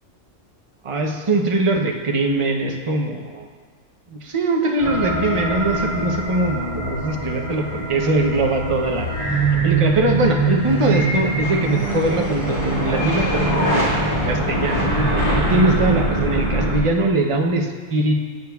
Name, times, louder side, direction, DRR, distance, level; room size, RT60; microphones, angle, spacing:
voice 1, 0.8-3.5 4.1-9.1 9.6-14.9 15.4-18.2, right 2 dB, 30° right, 2 dB, 0.6 m, -21 dB
sound 1, 4.8-16.8, right 2 dB, 35° left, 2.2 m, -22 dB
16.0 x 6.9 x 2.3 m, 1.5 s
omnidirectional pair, 1.3 m